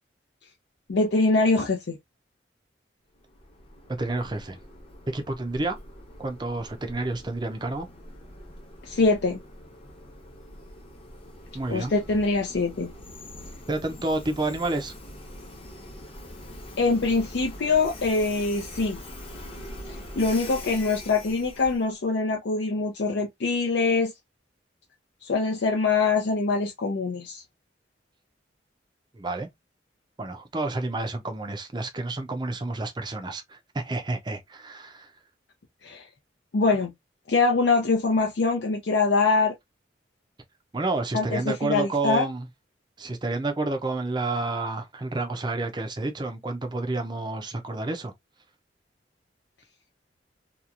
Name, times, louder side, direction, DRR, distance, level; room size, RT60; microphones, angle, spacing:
voice 1, 0.9-2.0 8.8-9.4 11.7-12.9 16.8-19.0 20.2-24.1 25.2-27.4 35.8-36.0 36.5-36.9 37.3-39.5 41.1-42.2, left 3 dB, 75° left, 0.5 m, -24 dB
Train, 3.1-21.9, left 1 dB, 30° left, 0.8 m, -43 dB
voice 2, 3.9-4.6 5.1-5.8 6.2-7.9 11.5-11.9 13.7-14.9 29.1-29.5 30.2-35.1 40.7-42.5 43.0-48.1, right 2 dB, 25° right, 0.5 m, -30 dB
2.9 x 2.4 x 2.4 m
head